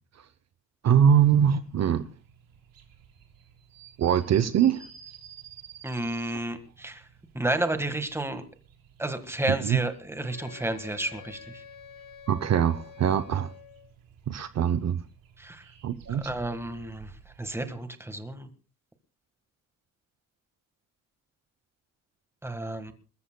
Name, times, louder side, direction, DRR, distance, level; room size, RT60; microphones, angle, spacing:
voice 1, 0.8-2.1 4.0-4.8 9.6-9.8 12.3-13.5 14.3-15.0 15.8-16.3, right 9 dB, 50° right, 0.7 m, -22 dB
sound 1, 0.9-17.7, right 8 dB, 80° right, 3.4 m, -53 dB
voice 2, 5.8-7.0 7.3-8.4 9.0-11.6 15.4-15.6 16.1-17.1 17.4-18.5 22.4-22.9, right 1 dB, 5° right, 1.6 m, -31 dB
Wind instrument woodwind instrument, 10.2-13.9, left 8 dB, 80° left, 5.2 m, -48 dB
28.5 x 14.0 x 2.2 m
cardioid pair, 140°, 34 cm